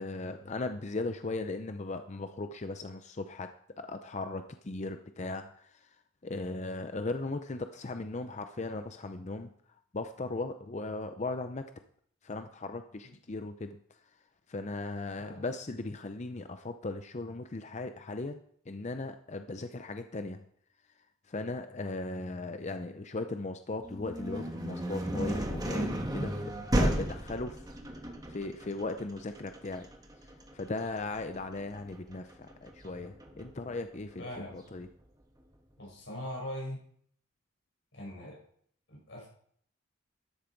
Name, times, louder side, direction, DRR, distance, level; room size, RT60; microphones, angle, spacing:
voice 1, 0.0-3.5 3.8-6.0 6.2-9.5 9.9-11.6 12.2-13.8 14.5-20.4 21.3-27.6 28.3-29.9 30.5-34.3 34.5-34.9, left 2 dB, 35° left, 8 dB, 0.6 m, -37 dB
sound 1, 23.8-33.6, right 1 dB, 20° right, 1.5 m, -34 dB
voice 2, 34.2-34.6 35.8-36.8 37.9-38.4 38.9-39.3, left 1 dB, 65° left, -1 dB, 5.8 m, -41 dB
13.0 x 11.0 x 4.6 m, 0.63 s
head